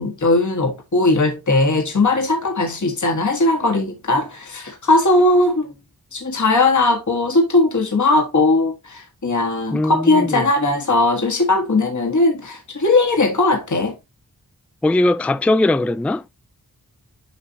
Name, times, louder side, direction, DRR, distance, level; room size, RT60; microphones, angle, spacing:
voice 1, 0.0-5.7 6.1-14.0, left 2 dB, 50° left, 1.4 m, -18 dB
voice 2, 9.7-10.5 14.8-16.2, left 2 dB, 5° left, 0.3 m, -19 dB
6.5 x 5.8 x 2.7 m
wide cardioid pair, 85°, 37 cm